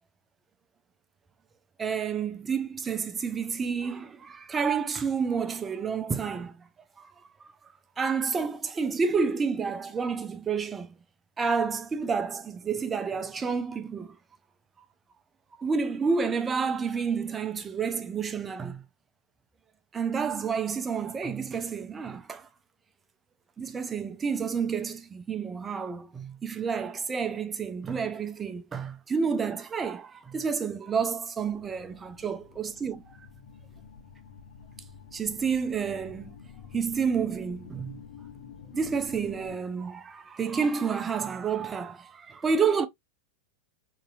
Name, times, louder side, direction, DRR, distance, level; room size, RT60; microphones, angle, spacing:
voice 1, 1.8-6.7 7.0-7.1 7.4-7.5 8.0-10.9 11.4-14.2 15.6-18.8 19.9-22.5 23.6-33.0 35.1-36.4 36.7-38.0 38.7-42.9, right 5 dB, 20° right, 0.4 m, -29 dB
sound 1, 31.4-39.6, left 7 dB, 55° left, 0.6 m, -49 dB
3.7 x 2.7 x 2.2 m
figure-of-eight pair, 90°, 0 cm